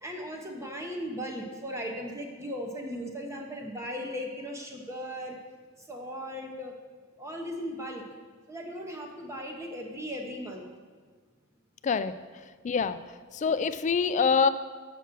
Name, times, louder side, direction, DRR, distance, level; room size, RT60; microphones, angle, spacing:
voice 1, 0.0-5.4 5.9-6.7 7.2-8.0 8.5-10.7, equal, 15° right, 1 dB, 0.9 m, -37 dB
voice 2, 11.8-12.1 12.6-13.0 13.3-14.5, left 5 dB, 35° left, 12 dB, 0.3 m, -25 dB
7.1 x 6.0 x 6.0 m, 1.5 s
head